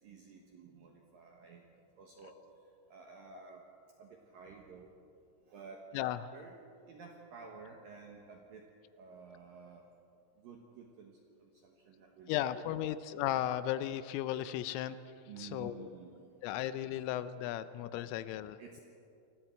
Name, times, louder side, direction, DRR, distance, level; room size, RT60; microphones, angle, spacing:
voice 1, 0.0-2.4 2.9-3.6 4.0-4.9 5.5-5.9 6.3-8.7 9.0-9.8 10.4-11.1 11.4-12.4 12.7-12.9 15.3-16.4 18.6-18.8, right 5 dB, 70° right, 1 dB, 2.2 m, -52 dB
voice 2, 5.9-6.3 12.3-15.0 15.4-16.0 16.4-18.6, left 12 dB, 85° left, 13 dB, 3.1 m, -35 dB
28.5 x 21.5 x 4.5 m, 2.6 s
omnidirectional pair, 5.9 m